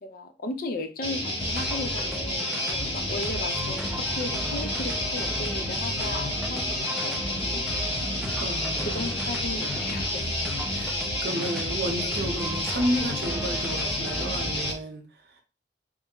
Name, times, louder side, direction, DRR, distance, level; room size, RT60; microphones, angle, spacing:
voice 1, 0.0-6.6 6.9-7.7 8.9-10.2, left 2 dB, 55° left, 0.5 m, -36 dB
Guitar, 1.0-14.7, left 1 dB, 30° left, 0.9 m, -30 dB
sound 1, 1.4-14.7, equal, 5° right, 0.4 m, -36 dB
voice 2, 8.4-9.1 10.7-11.0 11.2-15.0, right 1 dB, 65° right, 0.7 m, -31 dB
3.1 x 2.2 x 3.7 m
head